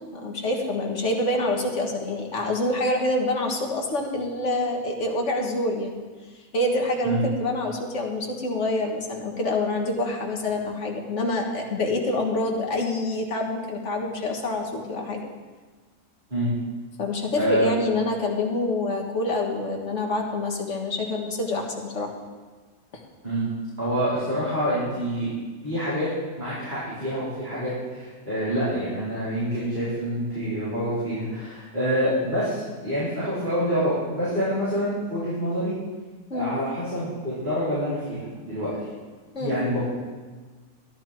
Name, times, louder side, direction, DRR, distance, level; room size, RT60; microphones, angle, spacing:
voice 1, 0.0-6.1 6.5-15.2 17.0-22.1 22.9-23.0 36.3-36.5 39.3-39.6, left 2 dB, 50° left, 0 dB, 1.9 m, -26 dB
voice 2, 17.3-17.7 23.2-23.4 23.8-25.3 25.6-26.1 26.4-35.7 36.3-38.7 39.4-39.8, equal, 30° right, -13 dB, 5.1 m, -26 dB
13.5 x 11.5 x 4.6 m, 1.4 s
omnidirectional pair, 1.6 m